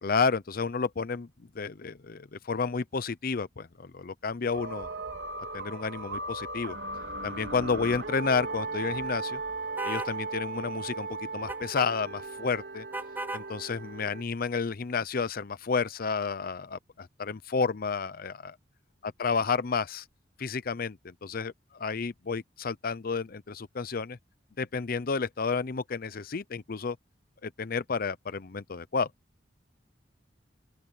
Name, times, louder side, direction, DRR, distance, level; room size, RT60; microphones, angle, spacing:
voice 1, 0.0-1.3 1.5-4.9 5.5-6.8 7.2-9.4 9.8-12.8 13.3-18.6 19.0-20.0 20.4-24.2 24.6-27.0 27.4-29.1, left 5 dB, 55° left, 0.6 m, -31 dB
sound 1, 4.5-14.2, right 3 dB, 75° right, 4.0 m, -37 dB
sound 2, 9.8-10.2 11.5-11.9 12.9-13.5, right 2 dB, 10° right, 0.6 m, -35 dB
open air
head